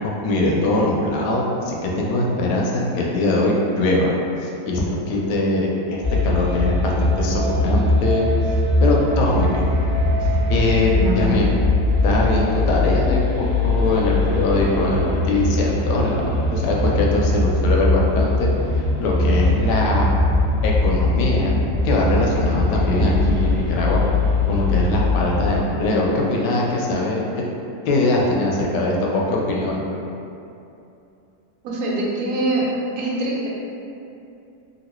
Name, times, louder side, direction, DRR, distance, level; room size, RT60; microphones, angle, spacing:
voice 1, 0.0-4.1 4.4-9.8 10.2-11.5 12.0-18.5 18.7-20.1 20.6-21.6 21.8-24.0 24.5-27.2 27.8-29.8, left 2 dB, 80° left, -2 dB, 1.2 m, -22 dB
sound 1, 6.0-25.6, left 2 dB, 10° left, 0.7 m, -21 dB
voice 2, 10.9-11.6 31.6-32.7 33.0-33.5, right 2 dB, 70° right, -4 dB, 1.0 m, -23 dB
3.0 x 2.7 x 2.9 m, 2.7 s
omnidirectional pair, 1.8 m